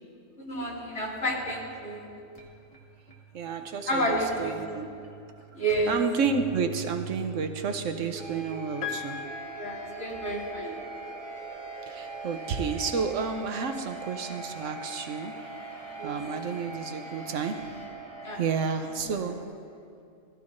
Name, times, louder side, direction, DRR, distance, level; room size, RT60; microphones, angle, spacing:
voice 1, 0.5-2.1 3.9-4.9 5.5-6.0 9.5-10.8 15.9-16.1 18.2-18.4 19.4-19.5, right 1 dB, 60° left, -5 dB, 2.8 m, -30 dB
sound 1, 1.4-19.4, right 3 dB, 25° left, 1.8 m, -42 dB
voice 2, 3.3-4.9 5.9-9.2 11.9-15.4 16.0-17.8 18.4-19.4, right 5 dB, 75° right, 7 dB, 1.1 m, -31 dB
Piano, 8.8-10.8 12.1-12.2, left 8 dB, 85° left, 1.4 m, -39 dB
16.5 x 15.0 x 2.6 m, 2.4 s
omnidirectional pair, 1.3 m